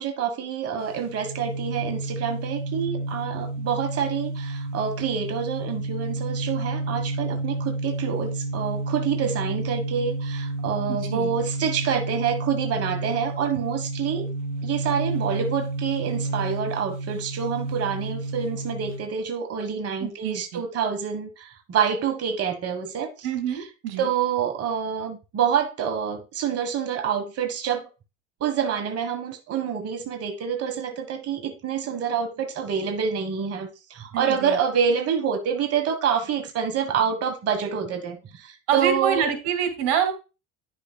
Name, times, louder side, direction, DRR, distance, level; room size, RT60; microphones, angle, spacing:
voice 1, 0.0-14.2 14.6-23.7 24.0-27.9 28.4-39.2, right 7 dB, 45° right, 1.4 m, -27 dB
sound 1, 0.8-19.1, right 2 dB, 65° right, 2.1 m, -30 dB
voice 2, 10.9-11.3 20.0-20.6 23.2-24.1 34.1-34.6 38.7-40.1, right 8 dB, 85° right, 2.2 m, -26 dB
10.0 x 6.4 x 2.3 m
supercardioid pair, 100°, 34 cm